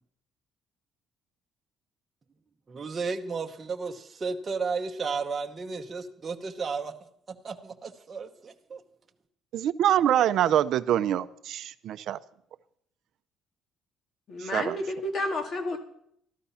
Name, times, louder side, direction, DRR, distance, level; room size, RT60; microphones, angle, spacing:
voice 1, 2.7-6.9 7.3-8.8, right 4 dB, 25° right, 1.0 m, -33 dB
voice 2, 9.5-12.2 14.4-14.8, right 11 dB, 60° right, 0.6 m, -25 dB
voice 3, 14.3-15.8, left 1 dB, 40° left, 2.4 m, -31 dB
13.0 x 13.0 x 5.7 m
cardioid pair, 155°, 0 cm